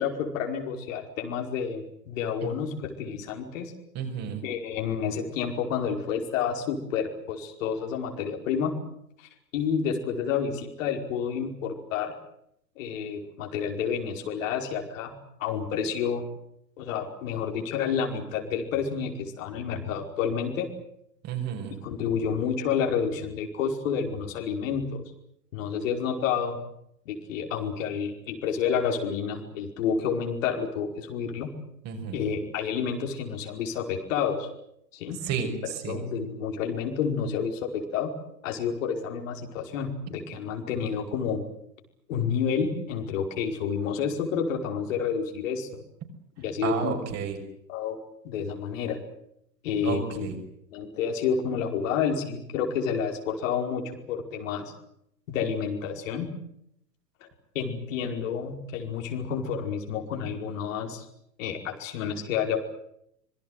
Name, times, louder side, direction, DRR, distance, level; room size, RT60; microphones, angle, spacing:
voice 1, 0.0-3.7 4.4-8.8 9.2-12.1 12.8-16.3 16.8-20.7 21.8-25.0 25.5-26.6 27.1-31.5 32.1-34.5 34.9-38.1 38.4-41.4 42.1-45.8 46.4-47.0 47.7-48.0 48.2-49.0 49.6-50.3 50.7-54.7 55.3-56.3 57.6-61.1 61.4-62.6, left 7 dB, 50° left, 3 dB, 5.3 m, -29 dB
voice 2, 3.9-4.4 21.2-21.7 31.8-32.1 35.2-36.0 46.6-47.4 49.8-50.4, right 7 dB, 30° right, 4 dB, 6.3 m, -31 dB
26.0 x 22.5 x 8.0 m, 0.74 s
figure-of-eight pair, 100°, 49 cm